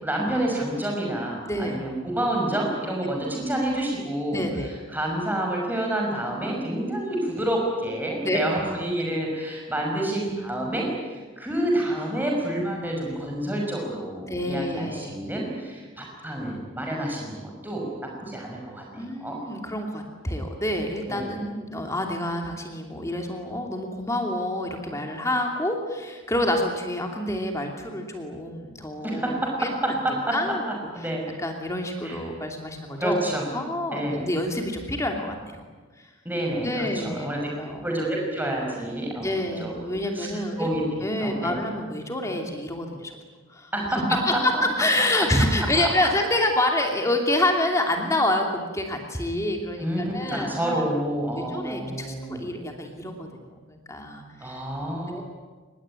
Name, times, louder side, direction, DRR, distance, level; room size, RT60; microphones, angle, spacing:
voice 1, 0.0-4.4 4.9-19.4 21.1-21.3 29.0-29.5 30.0-30.3 30.9-31.2 32.0-32.2 33.0-33.4 33.9-34.2 36.2-37.4 37.8-39.7 40.1-40.8 41.2-41.6 43.7-44.0 44.3-44.4 45.4-45.9 49.8-52.4 54.4-55.2, right 1 dB, 10° right, -1 dB, 5.9 m, -28 dB
voice 2, 1.5-1.8 4.3-4.7 8.2-8.4 14.3-15.2 19.0-29.9 30.3-30.6 31.4-33.2 33.5-35.7 36.0-36.1 36.6-37.3 37.6-37.9 39.2-40.7 41.0-43.2 43.5-44.5 44.8-50.8 51.3-54.6 55.1-55.2, left 1 dB, 15° left, 3 dB, 2.8 m, -27 dB
25.5 x 20.5 x 9.8 m, 1.4 s
head